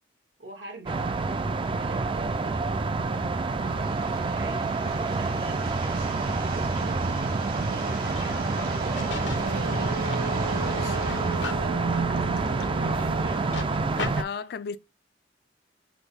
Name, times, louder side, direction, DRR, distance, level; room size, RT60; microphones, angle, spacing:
voice 1, 0.4-1.1 1.7-7.2 7.6-9.9 10.2-12.1 12.8-13.6 14.1-14.4, right 2 dB, 85° right, 1.7 m, -45 dB
sound 1, 0.9-14.2, right 3 dB, 30° right, 0.3 m, -28 dB
sound 2, 3.6-11.6, right 2 dB, 55° right, 1.1 m, -37 dB
sound 3, 7.8-14.1, left 1 dB, 85° left, 0.8 m, -37 dB
voice 2, 14.0-14.8, left 6 dB, 60° left, 0.4 m, -34 dB
6.1 x 2.2 x 3.3 m
head